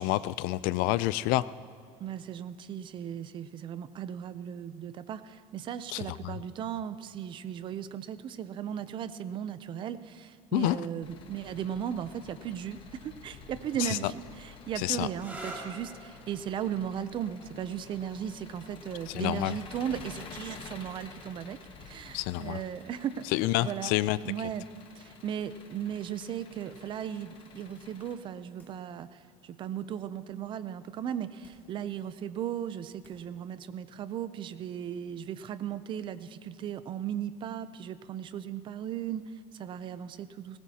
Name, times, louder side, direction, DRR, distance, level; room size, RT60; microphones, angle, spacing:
voice 1, 0.0-1.5 5.9-6.0 10.5-10.8 13.8-14.1 14.8-15.1 19.1-19.5 22.1-22.6 23.3-24.2, left 17 dB, 70° left, 17 dB, 0.4 m, -28 dB
voice 2, 2.0-23.3 23.6-23.9 24.2-24.7 24.9-40.6, right 9 dB, 35° right, 13 dB, 0.5 m, -37 dB
Engine, 11.0-28.1, left 6 dB, 35° left, 1.2 m, -50 dB
sound 1, 15.1-22.6 23.6-24.1 27.6-27.9, right 1 dB, 10° right, 2.0 m, -50 dB
sound 2, 28.6-29.0 29.5-29.6 31.4-31.9 32.6-32.7 33.0-33.4 33.8-33.9, left 1 dB, 15° left, 2.5 m, -58 dB
20.5 x 19.0 x 2.8 m, 2.3 s
cardioid pair, 165°, 15 cm